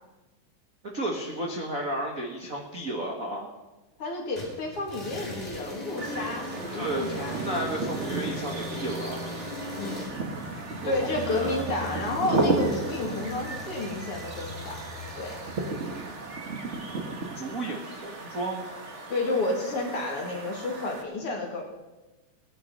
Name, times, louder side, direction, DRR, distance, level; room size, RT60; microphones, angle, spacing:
voice 1, 0.8-3.5 6.7-7.0 7.4-9.2 10.8-11.6 17.3-18.7, right 1 dB, 40° right, 0 dB, 1.2 m, -33 dB
voice 2, 4.0-7.5 9.8-10.1 10.8-14.8 15.2-15.4 19.1-21.6, left 2 dB, 45° left, 1 dB, 2.6 m, -31 dB
sound 1, 4.4-16.1, left 1 dB, 10° left, 4.0 m, -39 dB
sound 2, 6.0-21.0, right 3 dB, 70° right, 0.6 m, -34 dB
18.5 x 9.7 x 5.4 m, 1.1 s
omnidirectional pair, 3.9 m